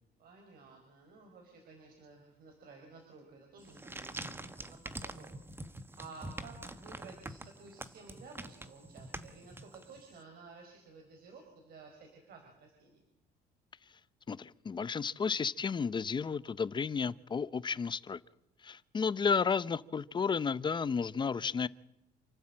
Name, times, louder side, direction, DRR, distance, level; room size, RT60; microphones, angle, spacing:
voice 1, 0.2-5.3 6.0-13.0, right 4 dB, 65° right, 5.0 m, -54 dB
sound 1, 3.6-10.1, right 2 dB, 15° right, 1.3 m, -45 dB
voice 2, 14.3-18.2 18.6-21.7, left 5 dB, 25° left, 0.7 m, -32 dB
28.5 x 12.0 x 8.8 m
cardioid pair, 110°, 17 cm